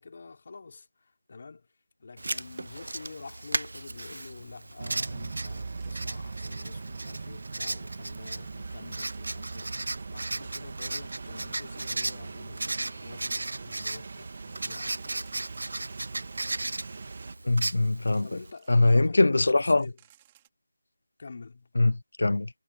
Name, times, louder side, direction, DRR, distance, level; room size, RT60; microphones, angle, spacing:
voice 1, 0.0-1.7 2.0-9.7 10.1-15.3 17.1-17.2 18.2-20.0 21.2-21.7, left 4 dB, 45° left, 5.0 m, -47 dB
Writing, 2.2-18.5, right 2 dB, 75° right, 0.4 m, -36 dB
sound 1, 4.8-17.4, right 4 dB, 45° right, 2.2 m, -41 dB
sound 2, 5.8-7.6 8.2-8.3 8.6-11.1 12.0-12.1 12.6-12.7 13.3-13.9 14.4-16.7 17.3-19.0 19.4-19.5 19.7-20.5, right 13 dB, 15° right, 3.7 m, -67 dB
voice 2, 17.5-18.4 18.7-19.8 21.8-22.5, left 2 dB, 70° left, 0.5 m, -22 dB
figure-of-eight pair, 170°, 0 cm